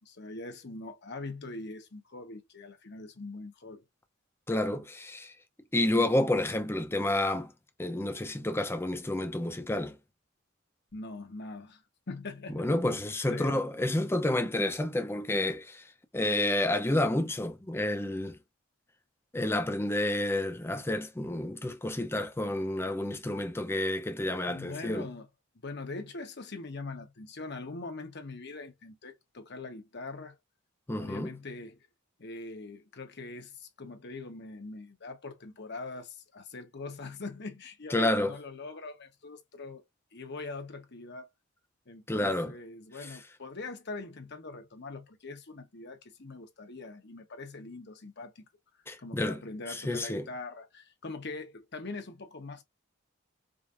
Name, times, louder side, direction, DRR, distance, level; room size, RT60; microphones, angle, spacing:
voice 1, 0.0-3.8 10.9-12.9 13.3-13.6 24.5-25.3 25.6-30.4 31.0-31.9 32.2-39.8 40.1-41.3 41.9-48.4 49.0-52.6, left 3 dB, 55° left, 1.0 m, -42 dB
voice 2, 4.5-5.3 5.7-7.5 7.8-10.0 12.5-15.8 16.1-18.4 19.3-25.1 30.9-31.3 37.9-38.3 42.1-42.5 48.9-49.4 49.7-50.3, left 1 dB, 10° left, 0.6 m, -29 dB
5.0 x 2.6 x 2.5 m
head